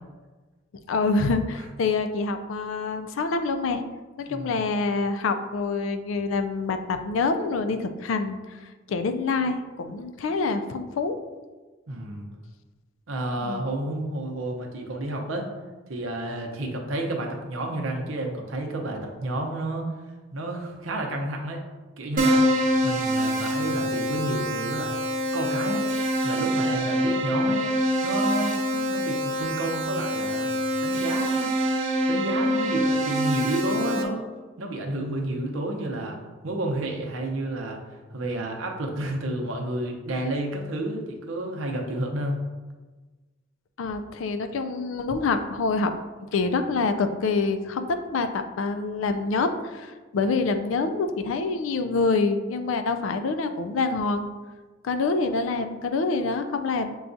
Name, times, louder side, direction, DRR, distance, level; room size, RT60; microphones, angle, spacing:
voice 1, 0.9-3.8 4.2-8.6 8.9-11.2 13.4-13.6 28.7-28.9 43.8-45.9 46.3-54.3 54.8-57.0, left 4 dB, 75° left, 8 dB, 0.4 m, -26 dB
voice 2, 4.3-4.6 11.9-12.3 13.1-15.5 15.9-19.9 20.3-21.6 22.0-22.5 22.8-25.0 25.3-25.8 26.2-27.6 28.0-28.6 28.9-30.5 30.8-31.5 32.1-34.2 34.6-36.2 36.4-37.8 38.1-42.4, right 1 dB, 90° right, 1 dB, 0.7 m, -30 dB
Keyboard (musical), 22.2-34.0, equal, 45° right, 0.6 m, -25 dB
6.8 x 2.3 x 2.6 m, 1.3 s
head